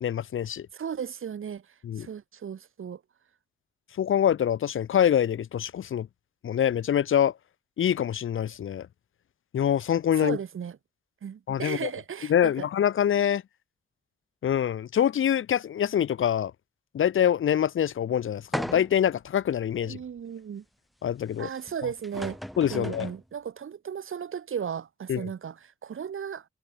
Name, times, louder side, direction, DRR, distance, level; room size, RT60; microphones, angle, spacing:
voice 1, 0.0-0.7 1.8-2.1 4.0-6.1 6.4-7.3 7.8-8.9 9.5-10.4 11.5-11.9 12.3-13.4 14.4-16.5 16.9-20.0 21.0-21.5 22.6-23.1 25.1-25.3, left 9 dB, 75° left, 0.8 m, -25 dB
voice 2, 0.7-1.7 2.0-3.0 10.2-10.8 11.2-12.7 19.8-20.6 21.4-22.4 22.7-26.4, right 7 dB, 75° right, 4.6 m, -35 dB
sound 1, 18.5-19.1 19.8-19.9 21.7-21.8 22.0-23.2, equal, ahead, 1.3 m, -35 dB
wide cardioid pair, 100°, 21 cm